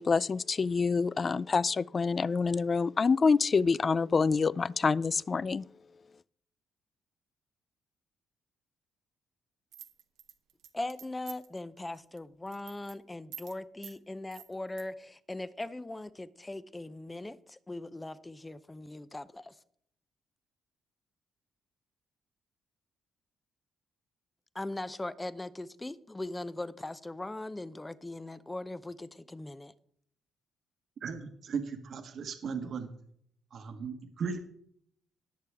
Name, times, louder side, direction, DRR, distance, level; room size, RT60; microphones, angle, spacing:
voice 1, 0.0-5.7, left 4 dB, 35° left, 0.3 m, -27 dB
sound 1, 9.7-11.6 11.9-12.2 12.5-12.9 13.3-13.6 13.8-14.0 14.3-14.8, right 10 dB, 85° right, 1.0 m, -47 dB
voice 2, 10.7-19.6 24.5-29.7, left 2 dB, 15° left, 0.7 m, -40 dB
voice 3, 31.0-32.9 33.5-34.4, right 5 dB, 60° right, 1.4 m, -37 dB
19.0 x 6.7 x 3.5 m
cardioid pair, 90°, 0 cm